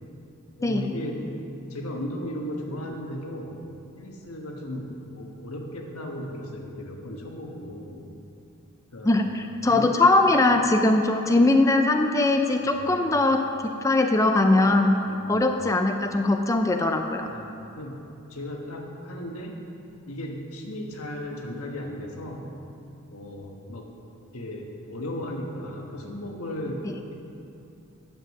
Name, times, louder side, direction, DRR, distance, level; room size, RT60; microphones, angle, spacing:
voice 1, 0.6-1.3 1.7-3.6 4.0-8.0 8.9-9.2 9.7-9.9 12.6-13.2 15.0-15.5 17.3-18.0 18.3-19.6 20.1-22.5 23.1-23.9 24.3-27.1, left 1 dB, 85° left, 1 dB, 1.4 m, -36 dB
voice 2, 9.0-13.5 13.8-15.0 15.3-17.3, left 2 dB, 15° left, 5 dB, 0.4 m, -21 dB
9.0 x 7.5 x 6.3 m, 2.8 s
head